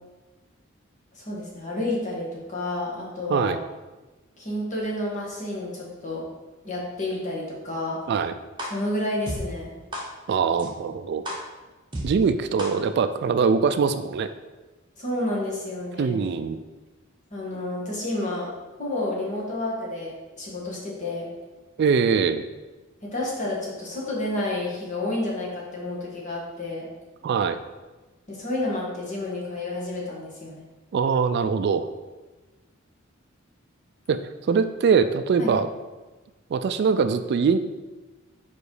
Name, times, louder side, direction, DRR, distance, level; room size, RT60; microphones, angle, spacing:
voice 1, 1.1-3.5 4.4-6.2 6.6-8.0 8.7-9.7 15.0-16.2 17.3-18.5 18.8-21.3 23.0-26.9 28.3-30.6 35.4-35.5, left 1 dB, 35° left, -4 dB, 1.7 m, -30 dB
sound 1, 8.6-8.7 9.3-9.4 9.9-10.0 10.6-10.7 11.2-11.4 11.9-12.0 12.6-12.7, equal, 25° right, 1.2 m, -31 dB
voice 2, 10.3-11.2 12.0-14.3 16.0-16.6 21.8-22.4 27.2-27.6 30.9-31.9 34.1-34.2 34.5-35.7 36.5-37.6, right 5 dB, 50° right, 10 dB, 0.3 m, -22 dB
5.1 x 4.7 x 4.8 m, 1.2 s
head